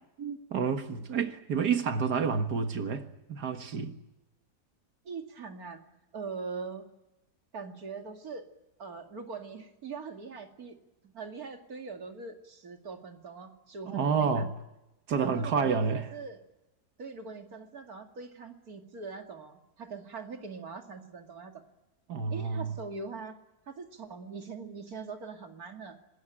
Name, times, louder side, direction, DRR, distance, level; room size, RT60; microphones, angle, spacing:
voice 1, 0.2-4.0 13.9-14.5 15.1-16.1 22.1-22.8, right 5 dB, 90° right, 2.1 m, -29 dB
voice 2, 5.0-5.8 6.1-6.9 7.5-8.4 8.8-10.8 11.0-14.4 15.2-16.4 17.0-21.6 22.3-23.4 23.7-26.0, right 4 dB, 65° right, 2.9 m, -42 dB
26.0 x 20.0 x 9.0 m
omnidirectional pair, 1.7 m